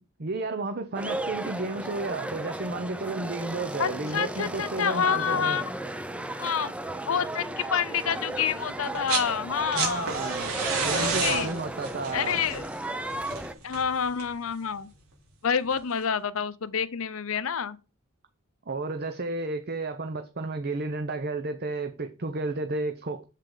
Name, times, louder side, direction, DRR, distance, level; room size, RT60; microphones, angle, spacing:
voice 1, 0.2-5.6 9.7-10.5 10.8-12.4 18.7-23.2, right 3 dB, 45° right, 0.7 m, -32 dB
sound 1, 0.9-13.5, right 1 dB, 5° right, 0.6 m, -35 dB
voice 2, 3.8-5.7 6.4-6.7 7.1-10.1 10.9-11.5 12.1-12.7 13.6-14.9 15.4-17.8, left 7 dB, 65° left, 0.6 m, -28 dB
sound 2, 8.8-9.3 9.6-14.4 15.7-15.8, right 5 dB, 80° right, 4.1 m, -31 dB
8.3 x 7.5 x 3.9 m
head